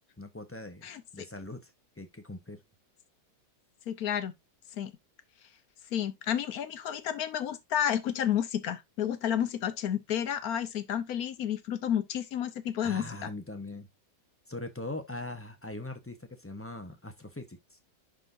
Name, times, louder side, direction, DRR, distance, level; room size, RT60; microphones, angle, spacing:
voice 1, 0.2-1.7 2.0-2.6 12.8-13.9 14.5-17.8, left 2 dB, 15° left, 0.4 m, -41 dB
voice 2, 0.8-1.2 3.9-4.3 4.8-4.9 5.9-13.3, left 10 dB, 60° left, 1.2 m, -31 dB
11.0 x 3.9 x 2.6 m
omnidirectional pair, 2.0 m